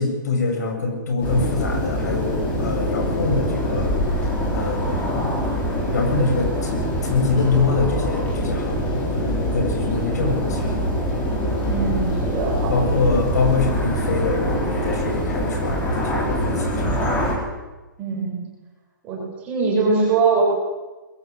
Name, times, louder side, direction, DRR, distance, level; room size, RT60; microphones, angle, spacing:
voice 1, 0.0-4.0 4.5-5.3 5.9-10.7 12.7-17.1, left 3 dB, 55° left, 4 dB, 7.1 m, -24 dB
sound 1, 1.2-17.4, equal, 10° left, 4.1 m, -24 dB
voice 2, 11.6-12.8 18.0-18.4 19.0-20.4, right 4 dB, 15° right, -3 dB, 7.8 m, -22 dB
22.0 x 21.0 x 9.6 m, 1.1 s
hypercardioid pair, 180°, 11 cm